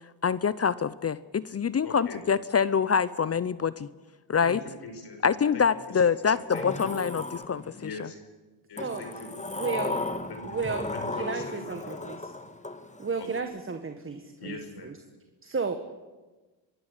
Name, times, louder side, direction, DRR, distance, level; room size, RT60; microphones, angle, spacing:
voice 1, 0.2-3.9 4.3-4.6 5.2-8.1, left 6 dB, 30° left, 17 dB, 0.7 m, -25 dB
voice 2, 1.8-2.2 4.4-5.2 5.5-6.9 7.7-8.2 8.7-12.1 13.2-13.5 14.4-14.9, left 3 dB, 55° left, 5 dB, 5.3 m, -43 dB
Sliding door, 6.5-8.0 8.8-13.4, left 2 dB, 15° left, 1.7 m, -35 dB
voice 3, 9.5-10.0 10.4-10.9 11.2-12.3 13.0-14.6 14.8-14.9 15.4-15.7, right 5 dB, 25° right, 7 dB, 1.8 m, -33 dB
24.5 x 12.5 x 10.0 m, 1.2 s
cardioid pair, 85°, 46 cm